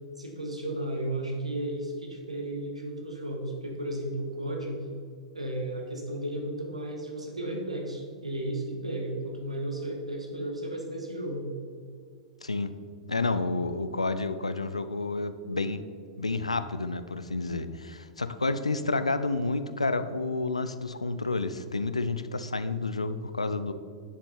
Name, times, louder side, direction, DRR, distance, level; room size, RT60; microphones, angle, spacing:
voice 1, 0.2-4.8 5.3-11.5, right 1 dB, 80° right, 1 dB, 1.8 m, -34 dB
voice 2, 12.4-12.7 13.1-15.9 16.2-23.7, left 3 dB, 80° left, 11 dB, 0.6 m, -30 dB
10.0 x 7.2 x 4.4 m, 2.2 s
figure-of-eight pair, 95°, 3 cm